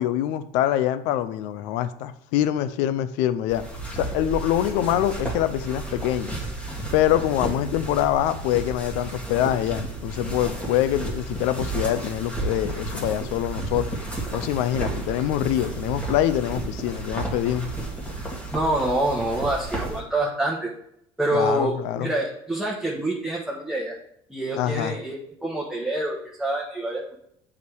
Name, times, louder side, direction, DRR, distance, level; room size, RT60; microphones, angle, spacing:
voice 1, 0.0-3.6 3.9-6.3 6.9-13.9 14.3-17.7 21.3-22.1 24.6-25.0, left 12 dB, 85° left, 14 dB, 0.6 m, -25 dB
sound 1, 3.5-20.0, right 2 dB, 10° left, 2.3 m, -32 dB
voice 2, 18.5-20.7 21.2-23.9 24.3-27.2, right 1 dB, 5° right, -4 dB, 1.5 m, -26 dB
8.2 x 5.0 x 4.7 m, 0.74 s
cardioid pair, 110°, 12 cm